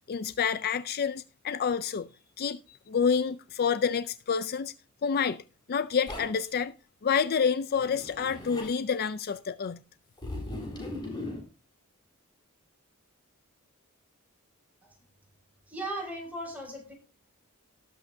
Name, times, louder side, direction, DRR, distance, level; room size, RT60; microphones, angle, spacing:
voice 1, 0.1-2.1 2.4-4.7 5.0-5.4 5.7-6.7 7.0-9.8, left 6 dB, 45° left, 0.4 m, -28 dB
Zipper (clothing), 6.1-6.5 7.7-8.8 10.2-11.4, left 1 dB, 20° left, 7.7 m, -38 dB
voice 2, 15.7-16.9, right 1 dB, 5° right, 6.1 m, -37 dB
18.5 x 8.1 x 2.7 m
head